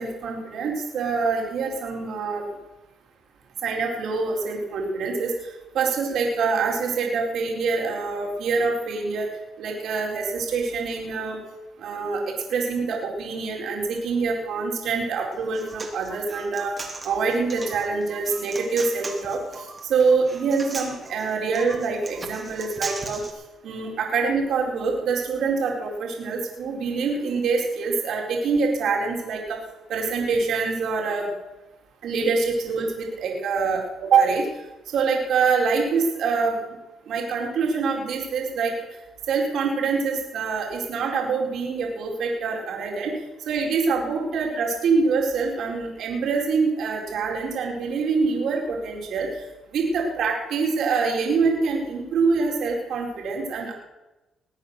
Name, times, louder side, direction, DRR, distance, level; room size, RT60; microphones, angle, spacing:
voice 1, 0.0-2.5 3.6-5.3 5.7-9.3 9.6-11.4 11.8-16.7 17.0-23.2 23.6-29.6 29.9-31.3 32.0-34.5 34.9-36.5 37.1-38.7 39.3-43.1 43.5-49.3 49.7-53.7, right 4 dB, 70° right, 0 dB, 4.3 m, -25 dB
Human voice, 15.3-23.3, right 3 dB, 30° right, 3.0 m, -38 dB
22.0 x 9.0 x 6.6 m, 1.0 s
cardioid pair, 90°, 0 cm